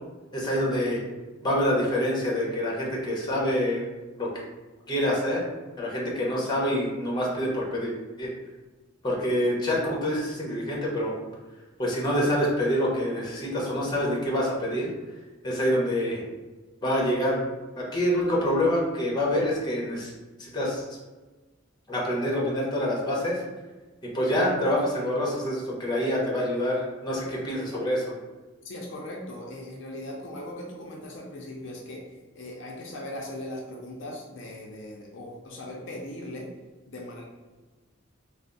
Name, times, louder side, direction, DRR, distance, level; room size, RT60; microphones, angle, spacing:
voice 1, 0.3-1.0 1.4-3.8 4.2-4.3 4.9-5.4 5.8-8.3 9.0-11.1 11.8-14.9 15.4-16.2 16.8-17.4 17.8-20.1 20.4-20.8 21.9-23.4 24.0-28.1, equal, 20° left, -3 dB, 0.9 m, -26 dB
voice 2, 28.6-32.0 32.4-36.5 36.9-37.2, left 1 dB, 65° left, -1 dB, 0.5 m, -39 dB
3.3 x 2.0 x 3.9 m, 1.2 s
head